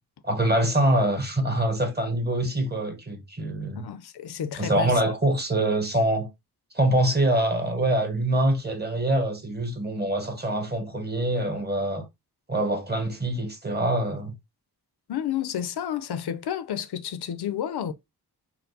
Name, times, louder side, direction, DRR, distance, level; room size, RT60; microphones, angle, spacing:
voice 1, 0.2-3.8 4.6-6.3 6.7-12.0 12.5-14.3, right 1 dB, 25° right, 1.1 m, -24 dB
voice 2, 3.8-5.0 15.1-17.9, left 9 dB, 75° left, 0.6 m, -31 dB
4.4 x 2.1 x 3.9 m
wide cardioid pair, 130°, 39 cm